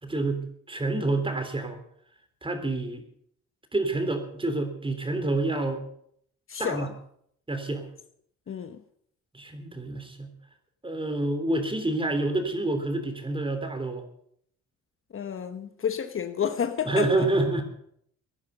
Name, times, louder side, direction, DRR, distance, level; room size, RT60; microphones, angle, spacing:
voice 1, 0.0-1.8 2.4-3.0 3.7-5.8 6.6-6.9 7.5-7.8 9.3-10.3 10.8-14.0 16.8-17.6, right 2 dB, 15° right, 3.4 m, -28 dB
voice 2, 6.5-6.9 8.5-8.8 15.1-17.1, left 8 dB, 45° left, 1.1 m, -30 dB
17.5 x 10.5 x 6.8 m
cardioid pair, 90°, 30 cm